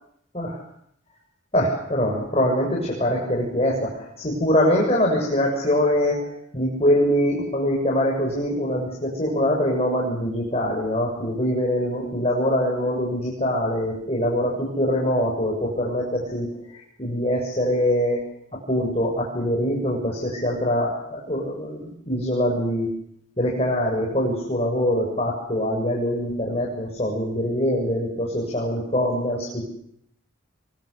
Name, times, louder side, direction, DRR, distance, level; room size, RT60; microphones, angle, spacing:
voice 1, 1.5-6.3 6.5-18.2 18.7-22.9 23.4-29.7, equal, 30° left, -2 dB, 7.4 m, -23 dB
26.5 x 23.5 x 8.4 m, 0.71 s
head